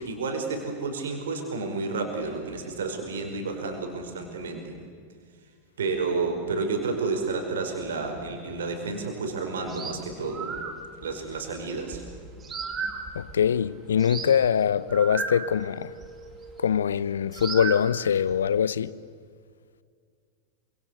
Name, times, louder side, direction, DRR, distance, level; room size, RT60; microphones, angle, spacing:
voice 1, 0.0-4.8 5.8-10.7 11.0-12.0, right 4 dB, 65° right, 5.2 m, -31 dB
sound 1, 9.7-17.0 17.3-18.5, right 5 dB, 20° right, 3.2 m, -37 dB
voice 2, 13.1-15.9 16.6-18.9, left 8 dB, 65° left, 0.8 m, -23 dB
27.5 x 26.0 x 6.6 m
figure-of-eight pair, 90°, 0 cm